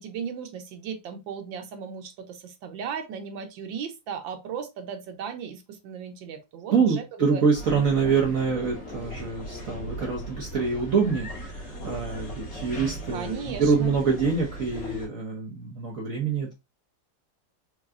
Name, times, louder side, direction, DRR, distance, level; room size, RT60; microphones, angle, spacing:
voice 1, 0.0-7.4 13.1-14.0, right 7 dB, 85° right, 1.6 m, -36 dB
voice 2, 6.7-16.5, right 5 dB, 50° right, 1.2 m, -25 dB
sound 1, 7.5-15.1, equal, 50° left, 2.1 m, -38 dB
4.6 x 3.1 x 2.4 m
omnidirectional pair, 2.0 m